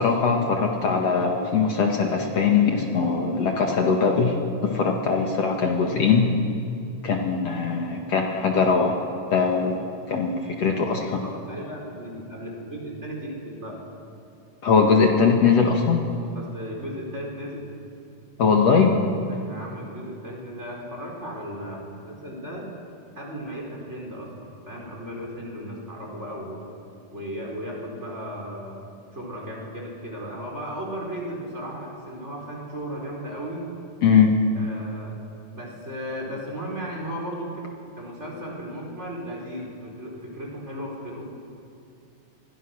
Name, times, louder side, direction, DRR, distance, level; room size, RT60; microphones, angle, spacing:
voice 1, 0.0-4.4 4.6-6.3 7.0-9.0 9.3-11.2 14.6-16.0 18.4-18.9 34.0-34.4, left 5 dB, 55° left, 1 dB, 2.7 m, -21 dB
voice 2, 11.1-13.8 16.4-17.7 19.3-22.7 23.2-26.7 27.1-28.8 29.1-33.7 34.5-35.2 35.5-37.6 38.0-41.2, equal, 20° right, -2 dB, 5.5 m, -35 dB
29.5 x 23.5 x 6.3 m, 2.5 s
omnidirectional pair, 3.8 m